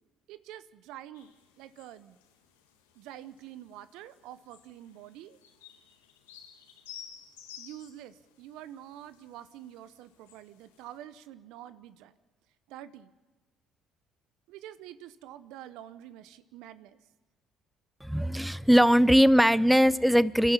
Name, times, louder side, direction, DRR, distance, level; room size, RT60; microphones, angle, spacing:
voice 1, 0.3-2.2 2.9-5.4 7.6-12.1 12.7-13.1 14.5-17.0, right 12 dB, 70° right, 14 dB, 0.8 m, -47 dB
sound 1, 1.1-11.0, left 9 dB, 85° left, 1.7 m, -54 dB
voice 2, 18.0-20.5, equal, 5° right, 18 dB, 0.6 m, -21 dB
29.0 x 12.5 x 7.2 m, 1.3 s
hypercardioid pair, 55°, 0 cm